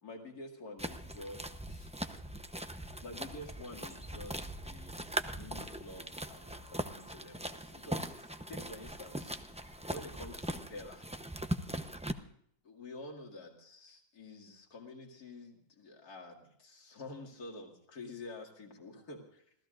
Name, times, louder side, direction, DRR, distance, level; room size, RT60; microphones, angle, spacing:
voice 1, 0.0-1.9 3.0-11.1 12.6-19.5, left 2 dB, 80° left, 0 dB, 2.8 m, -49 dB
sound 1, 0.8-12.1, right 1 dB, 10° right, 0.4 m, -40 dB
27.0 x 16.5 x 2.6 m, 0.69 s
omnidirectional pair, 1.6 m